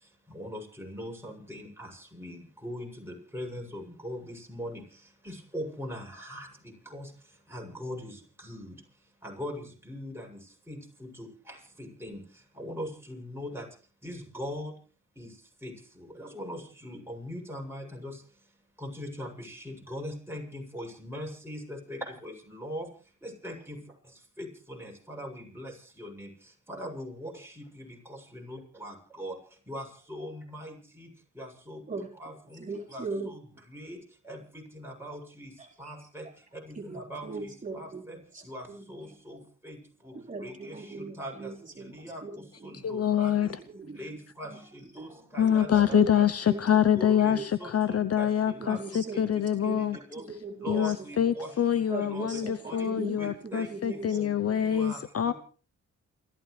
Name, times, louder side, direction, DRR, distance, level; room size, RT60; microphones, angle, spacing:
voice 1, 0.3-1.9 2.1-4.8 5.3-6.5 6.9-7.0 7.5-8.1 8.4-8.8 9.2-10.2 10.7-10.8 11.2-11.3 11.8-12.2 12.6-13.6 14.0-14.7 15.2-15.3 15.6-15.7 16.2-18.1 18.8-22.9 23.4-23.8 24.4-25.7 26.0-26.3 26.7-27.3 27.8-27.9 28.3-29.3 29.7-31.1 31.4-31.8 32.2-32.6 32.9-33.0 33.3-33.4 33.7-34.0 34.3-35.5 35.8-36.2 36.6-37.2 37.7-37.9 38.5-38.6 38.9-39.4 39.6-39.8 40.0-40.1 40.4-40.8 41.2-41.3 41.9-42.2 42.6-43.3 43.9-44.5 44.9-45.1 45.3-46.2 46.9-48.8 49.1-49.2 49.6-49.8 50.1-50.2 50.6-51.5 52.1-52.4 52.7-52.9 53.2-53.7 54.1-55.0 55.2-55.3, equal, 5° right, 0 dB, 7.7 m, -40 dB
voice 2, 32.6-33.3 35.6-35.9 36.7-39.1 40.3-43.0 43.3-44.2 44.5-44.6 45.9-46.1 46.5-46.6 47.1-47.4 48.6-51.1 51.9-54.3, right 3 dB, 25° right, -2 dB, 4.3 m, -39 dB
voice 3, 42.8-43.6 45.4-50.0 50.3-50.4 50.7-55.3, left 9 dB, 50° left, 13 dB, 0.8 m, -25 dB
28.5 x 14.5 x 3.3 m, 0.38 s
cardioid pair, 65°, 31 cm